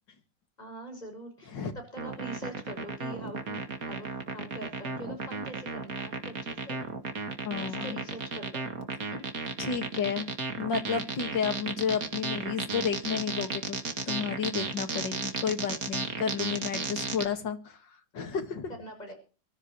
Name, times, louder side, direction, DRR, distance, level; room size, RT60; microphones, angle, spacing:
voice 1, 0.6-6.8 7.6-8.7 9.1-9.2 18.7-19.1, right 1 dB, 20° left, 3 dB, 6.6 m, -44 dB
sound 1, 2.0-17.3, right 4 dB, 50° right, 2.4 m, -34 dB
voice 2, 7.4-8.0 9.6-10.3 10.6-13.8 14.1-17.8 18.1-18.7, left 7 dB, 80° left, 7 dB, 2.7 m, -31 dB
23.5 x 14.0 x 3.2 m, 0.37 s
omnidirectional pair, 1.9 m